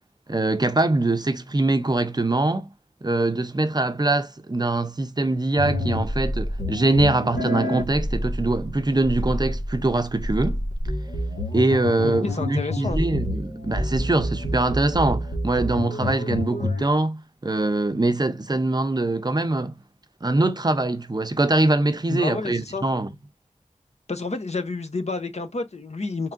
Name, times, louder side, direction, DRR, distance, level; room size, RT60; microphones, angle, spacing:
voice 1, 0.3-2.7 3.0-10.6 11.5-19.8 20.2-23.1, right 2 dB, 30° right, 0.6 m, -23 dB
sound 1, 5.6-16.9, left 1 dB, 90° left, 1.8 m, -28 dB
voice 2, 12.0-13.0 22.1-22.9 24.1-26.3, left 3 dB, 55° left, 0.8 m, -29 dB
4.4 x 3.7 x 2.5 m
wide cardioid pair, 45°, 13 cm